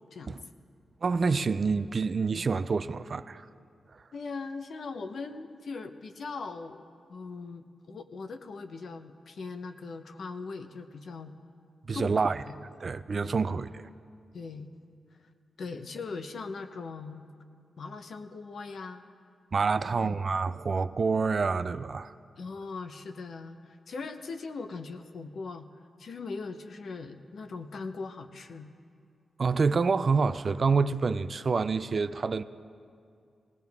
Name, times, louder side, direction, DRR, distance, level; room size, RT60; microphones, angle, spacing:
voice 1, 1.0-3.5 11.9-12.4 12.8-13.9 19.5-22.1 29.4-32.4, right 4 dB, 45° right, 0.4 m, -27 dB
voice 2, 4.1-6.8 7.1-11.3 11.9-12.1 12.5-12.6 13.2-13.4 14.3-14.7 15.6-17.2 17.8-19.0 19.8-20.2 22.4-25.7 26.0-28.7, left 4 dB, 65° left, 0.9 m, -40 dB
19.5 x 18.5 x 3.6 m
wide cardioid pair, 105°, 0 cm